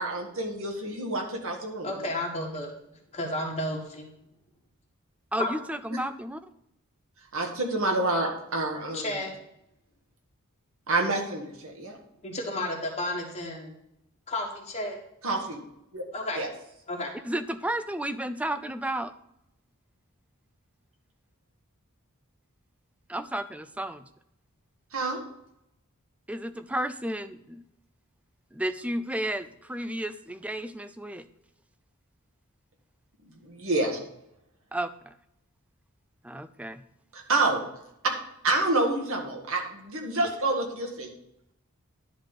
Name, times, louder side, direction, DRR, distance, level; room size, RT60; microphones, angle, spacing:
voice 1, 0.0-2.1 7.3-9.2 10.9-12.0 15.2-15.6 15.9-16.0 16.3-16.5 24.9-25.2 33.4-34.0 37.1-37.6 38.0-38.1 38.4-41.1, right 2 dB, 65° right, 1 dB, 1.8 m, -28 dB
voice 2, 1.8-2.7 3.1-4.1 5.4-5.5 8.9-9.3 12.2-13.7 14.3-15.0 16.1-16.4 16.9-17.1, left 1 dB, 30° left, 0 dB, 1.5 m, -32 dB
voice 3, 5.3-6.4 17.2-19.1 23.1-24.0 26.3-27.6 28.5-31.3 34.7-35.1 36.2-36.8, right 1 dB, 5° right, 11 dB, 0.4 m, -32 dB
11.0 x 3.9 x 6.7 m, 0.80 s
head